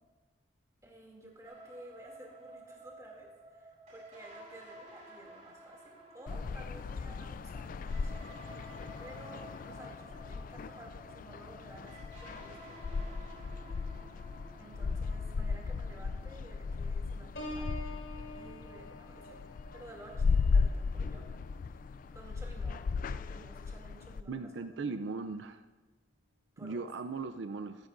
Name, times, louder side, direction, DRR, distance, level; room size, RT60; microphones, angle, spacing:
voice 1, 0.8-8.2 9.0-13.2 14.6-17.7 18.3-21.3 22.1-22.8 23.1-24.8 26.6-26.9, right 1 dB, 20° right, -2 dB, 2.6 m, -53 dB
sound 1, 1.4-17.0, right 1 dB, 40° right, 2.7 m, -53 dB
sound 2, 6.3-24.2, left 4 dB, 50° left, 0.3 m, -36 dB
Piano, 17.4-23.0 23.5-23.8, left 1 dB, 75° left, 3.1 m, -48 dB
voice 2, 24.3-25.6 26.6-27.8, right 4 dB, 90° right, 9 dB, 0.5 m, -38 dB
14.0 x 14.0 x 2.6 m, 1.3 s
head